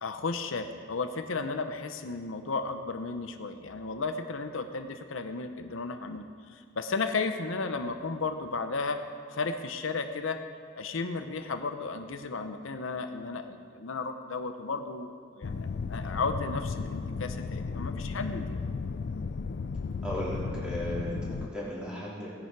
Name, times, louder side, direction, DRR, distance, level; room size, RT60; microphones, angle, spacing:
voice 1, 0.0-9.0 9.3-10.4 10.8-15.6 15.9-18.6, left 4 dB, 85° left, 7 dB, 0.8 m, -34 dB
sound 1, 15.4-21.5, left 4 dB, 55° left, 0.4 m, -34 dB
voice 2, 20.0-22.3, equal, 5° right, -8 dB, 3.5 m, -35 dB
18.0 x 10.5 x 4.7 m, 2.1 s
head